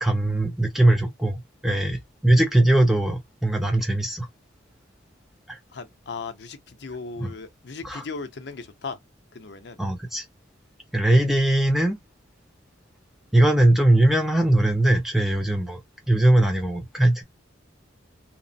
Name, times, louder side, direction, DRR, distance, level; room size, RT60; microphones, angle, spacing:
voice 1, 0.0-4.3 5.5-5.6 7.2-7.3 7.8-8.0 9.8-10.2 10.9-12.0 13.3-15.8 16.1-17.2, right 1 dB, ahead, 0.4 m, -20 dB
voice 2, 5.7-9.0 9.3-9.8, left 4 dB, 65° left, 0.5 m, -37 dB
2.9 x 2.0 x 2.6 m
head